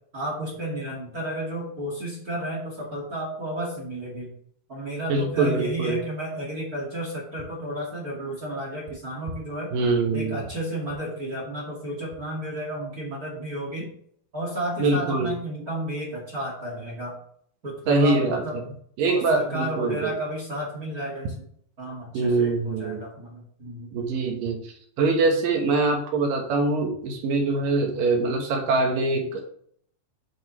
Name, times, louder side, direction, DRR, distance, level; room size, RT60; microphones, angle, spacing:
voice 1, 0.1-4.3 4.7-9.7 10.1-13.9 14.3-17.2 17.6-18.6 19.1-21.4 21.8-23.9, right 1 dB, 30° right, -3 dB, 1.7 m, -32 dB
voice 2, 5.1-6.0 9.7-10.4 14.8-15.3 17.9-18.6 19.0-20.1 22.1-23.0 23.9-29.4, right 3 dB, 65° right, 2 dB, 2.8 m, -24 dB
8.5 x 7.8 x 3.2 m, 0.63 s
omnidirectional pair, 4.7 m